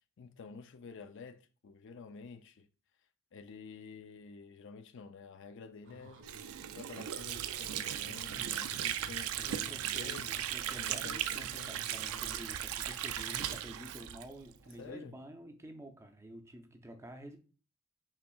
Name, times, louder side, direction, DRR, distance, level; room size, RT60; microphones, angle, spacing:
voice 1, 0.2-2.7 3.0-6.3 6.7-10.4 10.8-11.9 14.8-15.2, left 5 dB, 55° left, 0.4 m, -50 dB
sound 1, 5.8-12.4, right 1 dB, 55° right, 0.8 m, -55 dB
Water / Sink (filling or washing), 6.2-14.8, right 11 dB, 70° right, 0.4 m, -37 dB
voice 2, 8.3-8.8 9.4-17.4, right 1 dB, 10° right, 0.5 m, -49 dB
5.7 x 3.5 x 2.3 m
head